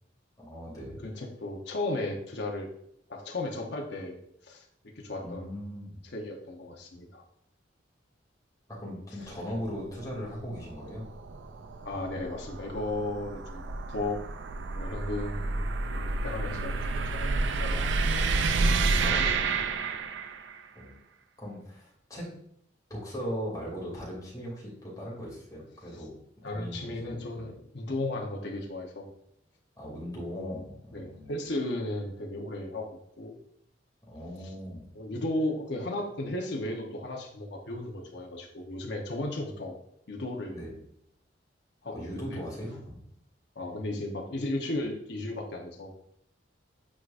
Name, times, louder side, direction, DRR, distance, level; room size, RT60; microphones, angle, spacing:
voice 1, 0.4-1.0 5.2-6.0 8.8-11.0 18.5-19.2 20.7-21.0 21.4-22.2 22.9-26.1 26.5-27.5 29.8-31.4 34.0-34.9 40.5-40.7 41.8-43.0, equal, 20° left, -5 dB, 2.7 m, -39 dB
voice 2, 1.0-2.7 3.1-4.2 4.4-4.6 4.9-5.5 6.1-7.2 11.8-13.6 13.9-14.2 14.7-17.9 18.9-19.4 26.4-29.1 30.3-30.6 30.9-33.4 34.9-39.7 40.1-40.5 41.8-42.4 43.5-45.9, left 2 dB, 65° left, 0 dB, 1.0 m, -35 dB
sound 1, 9.2-20.6, right 3 dB, 75° right, 0.5 m, -30 dB
8.8 x 4.8 x 2.5 m, 0.72 s
head